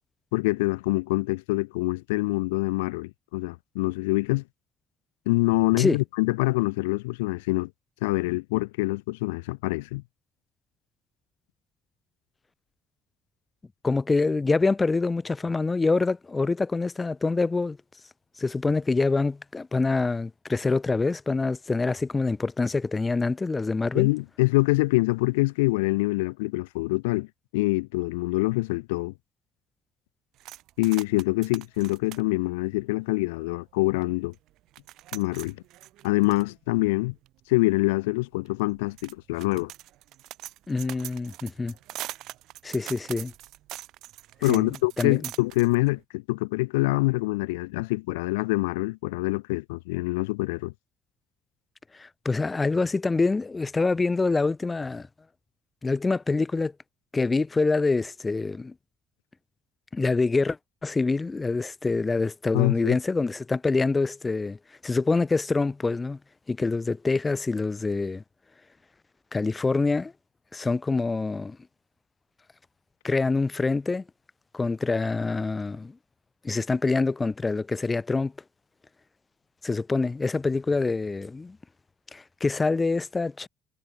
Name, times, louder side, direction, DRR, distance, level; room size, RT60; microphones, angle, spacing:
voice 1, 0.3-4.4 5.2-7.7 8.0-10.0 23.9-27.3 27.5-29.1 30.8-34.3 35.1-35.6 36.0-37.1 37.5-39.7 44.4-50.7 62.5-63.0, left 23 dB, 75° left, 1.3 m, -25 dB
voice 2, 13.8-17.8 18.4-24.1 40.7-41.7 42.6-43.3 44.5-45.2 52.0-55.1 55.8-56.7 57.1-58.7 59.9-60.6 60.8-64.6 64.8-66.2 66.5-68.2 69.3-70.1 70.5-71.6 73.0-74.0 74.5-75.9 76.4-78.3 79.6-81.6 82.1-83.5, left 3 dB, 25° left, 1.5 m, -25 dB
sound 1, 30.4-33.6 34.0-34.1 34.3-46.0, right 15 dB, 65° right, 2.9 m, -43 dB
figure-of-eight pair, 50°, 0 cm